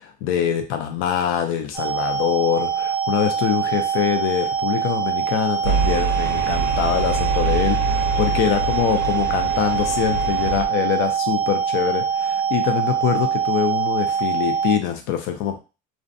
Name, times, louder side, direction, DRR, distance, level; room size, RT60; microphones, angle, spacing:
voice 1, 0.0-15.6, left 9 dB, 75° left, 5 dB, 0.4 m, -24 dB
sound 1, 1.7-14.8, right 7 dB, 10° right, 0.3 m, -24 dB
sound 2, 5.6-10.7, right 4 dB, 75° right, 0.4 m, -25 dB
2.5 x 2.1 x 2.5 m, 0.31 s
cardioid pair, 175°, 20 cm